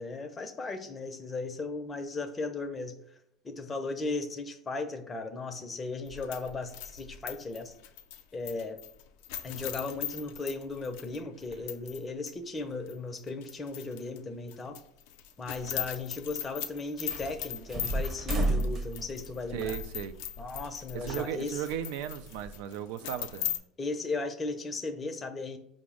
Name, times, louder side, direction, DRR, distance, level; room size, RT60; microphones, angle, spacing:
voice 1, 0.0-3.0 3.4-7.7 8.3-8.8 9.4-14.8 15.4-19.8 20.4-21.7 23.8-25.6, left 3 dB, 20° left, 0.5 m, -36 dB
sound 1, 6.1-12.0 12.3-12.4 12.9-14.2 14.5-23.6, left 10 dB, 75° left, 0.4 m, -39 dB
sound 2, 17.0-20.6 20.9-22.6, right 1 dB, 30° right, 0.7 m, -33 dB
voice 2, 19.5-20.2 20.9-23.5, right 10 dB, 75° right, 0.3 m, -36 dB
5.0 x 2.0 x 4.8 m
supercardioid pair, 110°, 0 cm